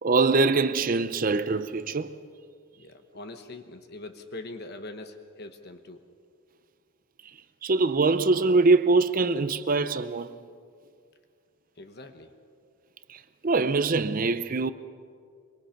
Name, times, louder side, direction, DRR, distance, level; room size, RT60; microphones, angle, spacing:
voice 1, 0.0-2.2 7.6-10.3 13.1-14.7, right 3 dB, 40° right, 0.6 m, -23 dB
voice 2, 2.8-6.0 11.8-12.3, left 2 dB, 50° left, 1.2 m, -42 dB
24.0 x 24.0 x 5.9 m
head